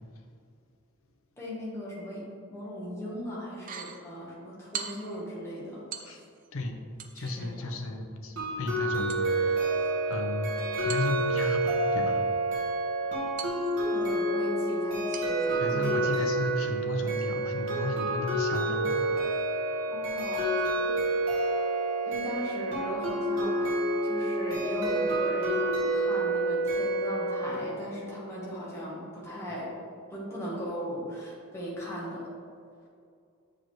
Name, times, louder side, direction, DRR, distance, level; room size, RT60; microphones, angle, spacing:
voice 1, 1.4-5.8 7.1-7.8 13.9-16.1 19.9-21.0 21.4-21.7 22.1-23.8 24.0-29.7 30.1-32.3, equal, 10° left, -6 dB, 1.2 m, -38 dB
sound 1, 3.5-4.0 4.7-5.2 5.9-6.5 7.0-7.5 9.1-10.1 10.9-11.7 13.4-14.1 15.1-15.5 16.0-16.1, right 7 dB, 35° right, 0.4 m, -42 dB
voice 2, 7.2-9.8 10.1-12.2 15.5-19.5, left 2 dB, 70° left, 4 dB, 0.7 m, -34 dB
sound 2, 8.4-27.5, right 2 dB, 65° right, 1.4 m, -28 dB
7.4 x 4.9 x 3.1 m, 2.3 s
head